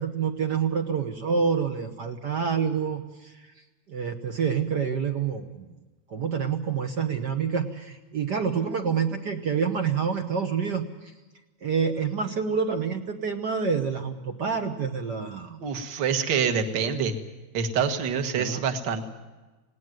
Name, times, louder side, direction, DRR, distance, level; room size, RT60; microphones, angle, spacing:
voice 1, 0.0-3.3 3.9-5.7 6.1-11.1 11.6-15.6 18.4-18.6, right 6 dB, 60° right, 6 dB, 1.1 m, -27 dB
voice 2, 15.6-17.2 17.5-19.1, right 6 dB, 45° right, 7 dB, 1.8 m, -26 dB
19.0 x 18.5 x 9.2 m, 1.2 s
omnidirectional pair, 3.3 m